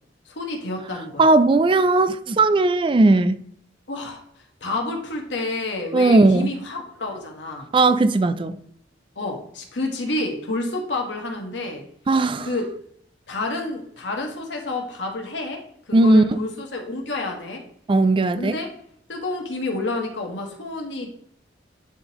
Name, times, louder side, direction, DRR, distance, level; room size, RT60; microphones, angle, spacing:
voice 1, 0.2-1.3 3.9-4.2 4.6-7.7 9.1-11.9 12.4-12.7 13.3-17.6 18.3-18.7 19.1-21.1, left 2 dB, 80° left, 1.5 m, -29 dB
voice 2, 1.2-3.4 5.9-6.5 7.7-8.6 12.1-12.5 15.9-16.4 17.9-18.6, right 2 dB, 30° right, 0.3 m, -17 dB
10.5 x 3.7 x 3.0 m
head